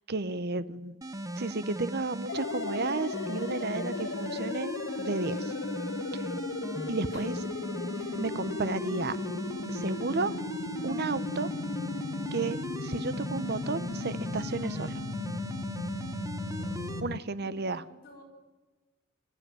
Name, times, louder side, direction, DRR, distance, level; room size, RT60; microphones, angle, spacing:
voice 1, 0.1-1.0 1.4-4.7 5.0-5.5 6.9-7.3 8.2-9.2 9.7-10.3 10.8-11.5 12.3-15.0 17.0-17.8, right 3 dB, 55° right, 14 dB, 0.9 m, -33 dB
sound 1, 1.0-17.0, right 1 dB, 15° right, 1.0 m, -38 dB
sound 2, 2.3-17.2, left 4 dB, 65° left, 0.7 m, -36 dB
voice 2, 7.1-7.4 7.9-8.2 16.6-18.2, left 1 dB, 50° left, 0 dB, 5.3 m, -53 dB
25.5 x 14.5 x 9.2 m, 1.2 s
head